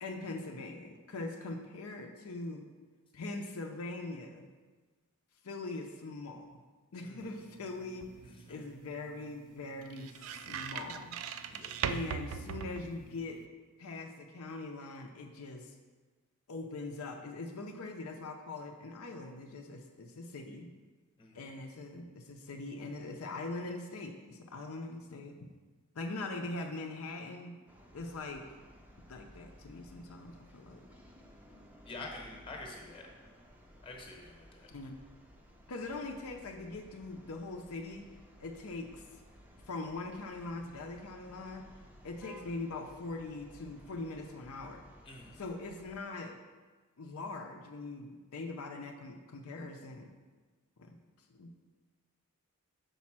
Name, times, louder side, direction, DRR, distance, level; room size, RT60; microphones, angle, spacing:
voice 1, 0.0-2.6 3.1-4.4 5.4-6.6 6.9-8.1 8.5-11.2 11.9-13.4 13.8-15.7 16.5-20.7 21.3-25.5 25.9-27.6 27.9-28.5 29.1-30.9 34.7-35.0 35.7-38.1 38.4-39.1 39.7-41.6 42.0-44.9 45.4-46.3 47.0-50.1 50.8-51.0 51.3-51.7, left 2 dB, 75° left, 2 dB, 0.6 m, -42 dB
sound 1, 7.2-13.4, right 7 dB, 65° right, 0.3 m, -41 dB
voice 2, 8.2-8.6 11.5-11.7 21.2-21.5 31.8-33.1 33.8-34.7 45.0-45.4, left 2 dB, 25° left, 0 dB, 0.9 m, -47 dB
sound 2, 27.7-46.0, equal, 5° right, 0.5 m, -57 dB
5.3 x 4.2 x 5.9 m, 1.3 s
head